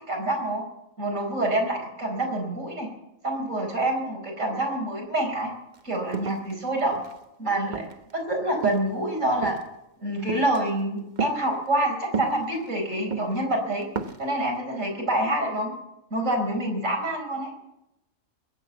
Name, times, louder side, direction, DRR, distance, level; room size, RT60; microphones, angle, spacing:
voice 1, 0.1-0.6 1.0-2.9 3.2-5.5 5.8-7.0 7.4-7.9 8.1-9.6 10.0-13.9 14.2-15.7 16.1-17.5, right 1 dB, 65° right, 1 dB, 5.0 m, -26 dB
sound 1, 5.7-5.8 6.1-7.2 7.7-8.1 8.6-9.0 9.4-9.7 10.3-10.6 11.2-11.4 12.1-12.7 13.1-13.4 13.8-14.3, right 5 dB, 40° right, 0.9 m, -32 dB
21.5 x 8.0 x 8.2 m, 0.86 s
omnidirectional pair, 1.4 m